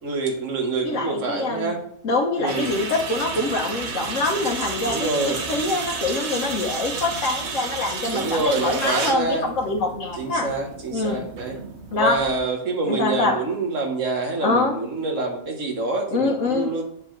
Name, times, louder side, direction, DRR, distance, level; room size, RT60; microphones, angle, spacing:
voice 1, 0.0-1.8 2.4-2.7 4.8-5.4 8.1-9.5 10.2-11.6 11.9-16.8, right 3 dB, 75° right, 2 dB, 1.8 m, -26 dB
voice 2, 0.8-1.7 2.0-10.5 10.9-11.3 11.9-12.2 12.8-13.4 14.4-14.8 16.1-16.7, left 3 dB, 90° left, -1 dB, 1.5 m, -24 dB
sound 1, 2.5-12.4, right 4 dB, 60° right, 1.3 m, -31 dB
8.5 x 7.1 x 3.2 m, 0.65 s
omnidirectional pair, 1.3 m